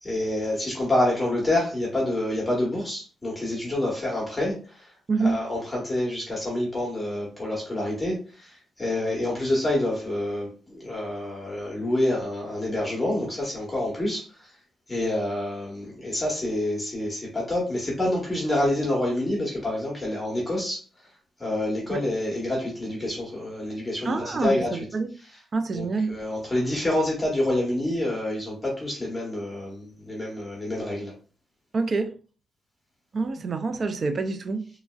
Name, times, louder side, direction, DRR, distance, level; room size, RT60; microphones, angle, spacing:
voice 1, 0.0-4.9 5.2-14.5 14.9-20.8 21.4-24.7 25.7-31.1, left 1 dB, 15° left, 1.1 m, -27 dB
voice 2, 5.1-5.4 21.9-22.0 24.0-25.1 25.5-26.2 31.7-32.1 33.1-34.7, right 4 dB, 40° right, 0.4 m, -27 dB
3.0 x 2.5 x 2.3 m
cardioid pair, 120°, 0 cm